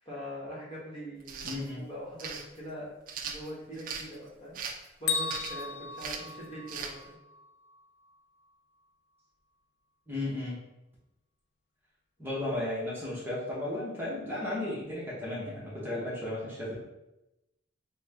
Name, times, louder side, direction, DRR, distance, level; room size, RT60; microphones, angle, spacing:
voice 1, 0.0-2.9 3.2-4.6 5.0-7.2, equal, 30° left, -7 dB, 1.0 m, -42 dB
sound 1, 1.2-1.6 2.2-2.4 3.1-4.1 4.5-4.9 5.3-5.6 6.0-6.3 6.7-6.9, right 6 dB, 45° right, 0.4 m, -38 dB
voice 2, 1.4-1.9 10.1-10.6 12.2-16.7, left 1 dB, 10° right, -7 dB, 0.9 m, -34 dB
Bell, 5.1-7.1, left 5 dB, 60° left, 0.5 m, -34 dB
4.3 x 2.1 x 3.4 m, 0.95 s
head